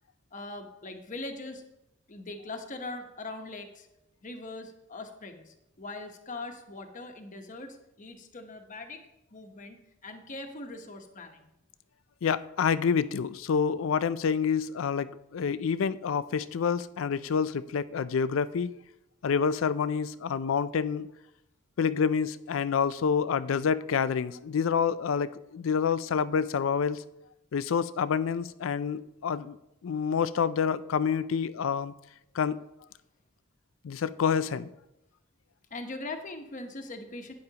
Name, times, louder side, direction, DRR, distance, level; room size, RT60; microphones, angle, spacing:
voice 1, 0.3-1.6 2.1-3.9 4.2-11.5 35.7-37.3, left 2 dB, 40° left, 1.0 m, -41 dB
voice 2, 12.2-18.7 19.2-21.1 21.8-27.0 27.5-29.6 29.8-31.9 32.3-32.6 33.8-34.7, left 6 dB, 70° left, 0.4 m, -28 dB
11.5 x 9.5 x 2.9 m
head